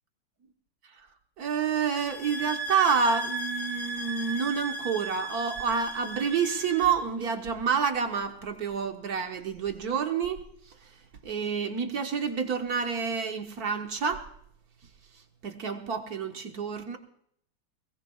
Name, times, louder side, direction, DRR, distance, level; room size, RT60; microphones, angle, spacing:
voice 1, 1.4-10.4 11.2-14.2 15.4-17.0, right 6 dB, 60° right, 1.6 m, -28 dB
sound 1, 2.0-7.0, right 2 dB, 20° left, 1.1 m, -36 dB
22.5 x 18.5 x 2.3 m
omnidirectional pair, 2.0 m